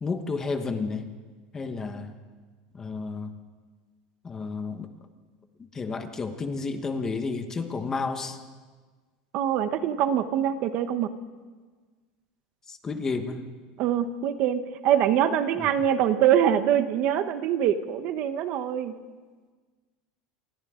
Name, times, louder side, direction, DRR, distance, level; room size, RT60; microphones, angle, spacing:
voice 1, 0.0-1.1 1.5-2.2 2.7-3.3 4.2-4.9 5.7-8.4 12.7-13.4 15.6-15.7, left 4 dB, 15° left, 7 dB, 1.2 m, -31 dB
voice 2, 9.3-11.1 13.8-18.9, right 10 dB, 40° right, 10 dB, 1.0 m, -24 dB
28.0 x 24.5 x 3.8 m, 1.4 s
supercardioid pair, 175°, 3 cm